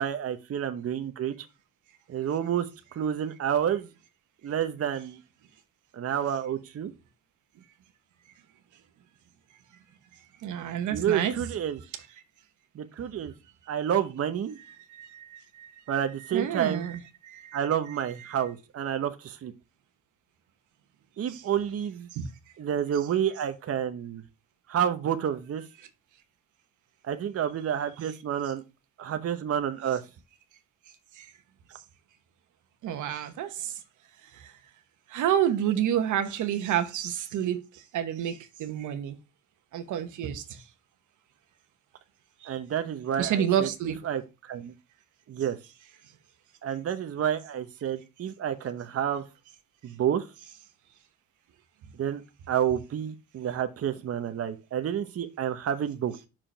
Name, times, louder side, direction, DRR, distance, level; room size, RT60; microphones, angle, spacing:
voice 1, 0.0-1.5 2.1-2.7 2.9-3.9 4.4-5.2 5.9-6.9 10.9-11.8 12.7-13.3 13.7-14.6 15.9-16.9 17.5-19.5 21.2-22.1 22.6-24.2 24.7-25.6 27.0-28.6 29.0-30.0 42.5-43.7 44.0-44.7 45.3-45.6 46.6-49.2 49.8-50.3 52.0-52.2 52.5-56.3, right 9 dB, 50° right, 0.9 m, -29 dB
voice 2, 10.4-11.3 14.9-15.8 16.3-17.6 21.3-21.4 22.1-22.3 31.2-31.3 32.8-33.7 34.4-34.5 35.1-39.2 39.7-40.4 43.2-44.0, right 10 dB, 80° right, 1.1 m, -29 dB
5.9 x 5.0 x 4.4 m
cardioid pair, 90°, 30 cm